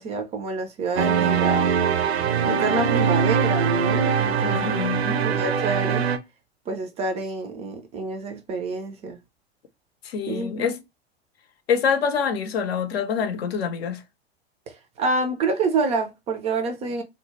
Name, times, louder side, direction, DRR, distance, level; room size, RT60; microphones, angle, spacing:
voice 1, 0.0-1.7 2.5-4.8 5.2-6.1 6.7-9.2 10.3-10.8 14.7-17.0, right 3 dB, 20° right, 0.4 m, -27 dB
sound 1, 1.0-6.2, right 6 dB, 75° right, 0.5 m, -22 dB
voice 2, 4.4-5.3 10.0-10.8 11.7-14.0, left 6 dB, 70° left, 0.6 m, -26 dB
2.2 x 2.1 x 2.9 m
figure-of-eight pair, 90°, 32 cm